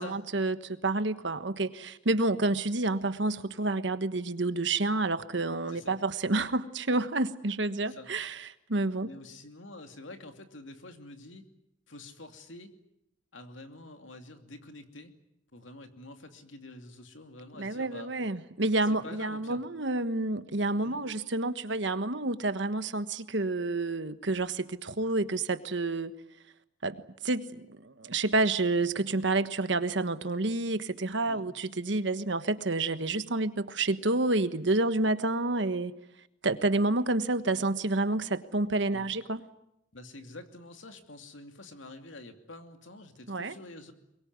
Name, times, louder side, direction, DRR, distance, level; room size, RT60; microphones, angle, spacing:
voice 1, 0.0-9.1 17.6-26.1 26.8-35.9 36.4-39.4 43.3-43.5, right 2 dB, 65° right, 11 dB, 1.4 m, -29 dB
voice 2, 5.7-6.0 7.8-8.1 9.0-11.5 11.9-12.7 13.3-15.1 15.5-18.1 18.8-19.6 20.8-21.0 31.3-31.5 38.9-39.1 39.9-43.9, left 2 dB, 85° left, 6 dB, 2.7 m, -47 dB
23.0 x 22.0 x 9.5 m, 0.83 s
head